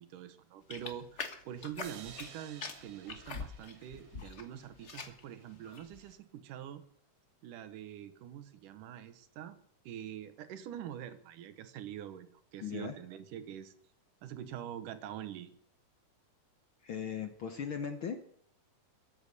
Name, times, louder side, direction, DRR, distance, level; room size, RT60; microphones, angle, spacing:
voice 1, 0.0-6.8 7.4-9.6 9.8-13.7 14.2-15.5, right 10 dB, 85° right, 11 dB, 2.7 m, -45 dB
sound 1, 0.7-2.3 2.6-4.4 4.7-5.2 5.7-6.0, left 5 dB, 80° left, 0.6 m, -43 dB
sound 2, 1.8-5.1, right 8 dB, 70° right, 2.5 m, -54 dB
voice 2, 12.6-13.0 16.8-18.2, left 7 dB, 60° left, 7 dB, 1.3 m, -38 dB
22.0 x 9.0 x 6.8 m, 0.62 s
omnidirectional pair, 3.6 m